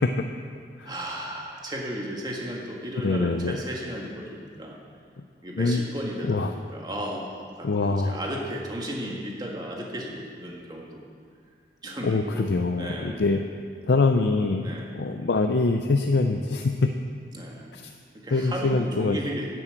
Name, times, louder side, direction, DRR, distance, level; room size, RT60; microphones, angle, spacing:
voice 1, 0.8-4.8 5.4-11.0 11.8-12.5 12.8-13.2 14.6-14.9 16.0-16.3 17.3-17.7 18.2-19.5, equal, 25° right, -1 dB, 1.6 m, -34 dB
voice 2, 3.0-3.6 5.2-5.3 5.6-5.9 6.2-6.5 7.6-8.2 12.0-13.4 13.9-16.9 17.7-17.9 18.3-19.2, left 3 dB, 75° left, 5 dB, 0.5 m, -24 dB
10.0 x 7.6 x 7.8 m, 2.2 s
head